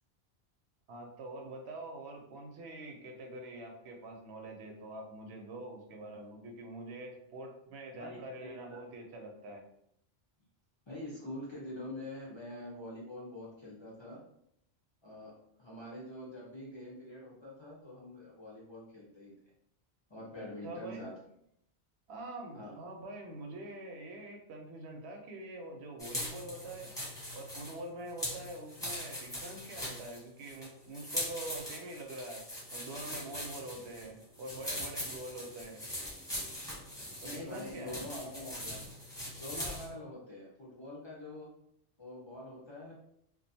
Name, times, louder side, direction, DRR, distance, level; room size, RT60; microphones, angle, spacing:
voice 1, 0.9-9.6 20.4-21.1 22.1-26.9 27.3-32.5 32.7-35.8 37.2-38.0, right 2 dB, 90° right, 2 dB, 0.9 m, -45 dB
voice 2, 8.0-8.8 10.9-14.2 15.0-15.3 15.6-19.3 20.1-21.1 22.5-22.8 37.2-38.9 39.4-41.5 42.0-42.9, left 1 dB, 40° left, -6 dB, 0.4 m, -45 dB
sound 1, 26.0-39.9, left 1 dB, 5° left, 0.9 m, -41 dB
2.4 x 2.2 x 2.7 m, 0.73 s
omnidirectional pair, 1.1 m